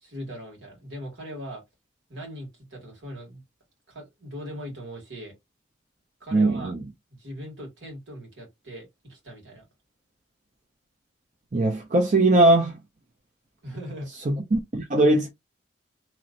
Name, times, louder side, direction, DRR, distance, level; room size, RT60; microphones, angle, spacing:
voice 1, 0.0-1.6 2.1-3.4 3.9-5.4 6.2-6.7 7.2-9.6 13.6-14.1, equal, 70° right, 2.1 m, -39 dB
voice 2, 6.3-6.8 11.5-12.8 14.3-15.3, right 2 dB, 40° right, 0.6 m, -20 dB
3.0 x 2.9 x 2.6 m
head